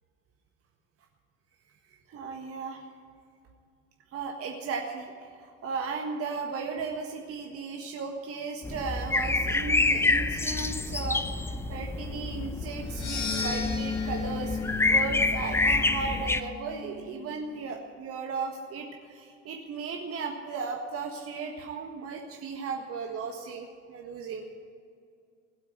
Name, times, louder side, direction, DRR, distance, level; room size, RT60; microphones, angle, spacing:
voice 1, 2.1-2.8 4.1-24.5, right 5 dB, 35° right, 1 dB, 1.6 m, -36 dB
sound 1, 8.6-16.4, left 3 dB, 5° left, 0.5 m, -28 dB
sound 2, 12.9-17.2, left 5 dB, 30° left, 3.6 m, -34 dB
16.0 x 8.6 x 9.1 m, 2.3 s
figure-of-eight pair, 70°, 38 cm